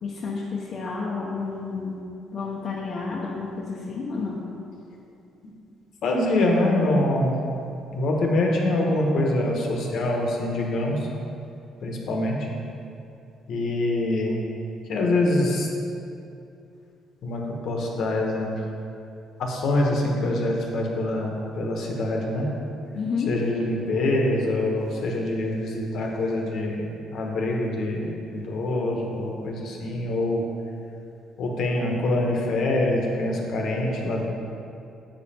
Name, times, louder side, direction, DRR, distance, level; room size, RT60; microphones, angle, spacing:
voice 1, 0.0-2.0 2.3-4.4 22.9-23.3, left 4 dB, 45° left, -4 dB, 0.8 m, -30 dB
voice 2, 6.0-7.4 7.9-11.1 11.8-12.4 13.5-14.4 14.9-15.7 17.2-18.6 19.4-22.5 23.2-30.4 31.4-34.3, left 1 dB, 65° left, 0 dB, 1.2 m, -25 dB
7.9 x 5.3 x 4.4 m, 2.6 s
cardioid pair, 125°, 0 cm